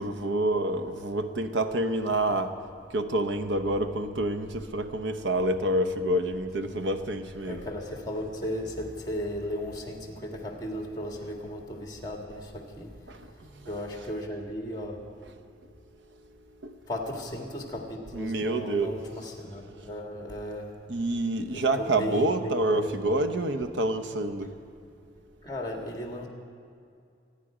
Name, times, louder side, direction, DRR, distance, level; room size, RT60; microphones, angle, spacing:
voice 1, 0.0-2.5 2.9-7.7 13.1-13.7 16.6-16.7 18.1-19.0 20.9-24.5, right 1 dB, 75° right, 9 dB, 0.9 m, -28 dB
voice 2, 7.4-12.9 13.7-15.0 16.9-20.7 21.5-23.4 25.4-26.3, equal, 20° left, 2 dB, 1.8 m, -36 dB
25.0 x 10.0 x 5.0 m, 2.4 s
head